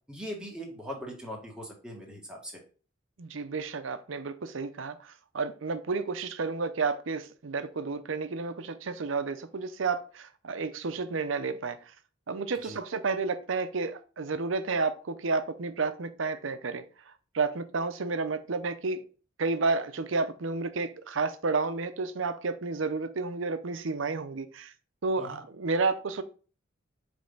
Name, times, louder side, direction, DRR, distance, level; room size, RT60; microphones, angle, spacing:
voice 1, 0.1-2.5 12.6-12.8 25.2-25.4, equal, 5° right, -2 dB, 1.7 m, -40 dB
voice 2, 3.2-11.8 12.3-16.8 17.3-19.0 19.4-24.7 25.0-26.2, right 4 dB, 80° right, 11 dB, 0.7 m, -31 dB
5.3 x 3.4 x 5.5 m, 0.37 s
head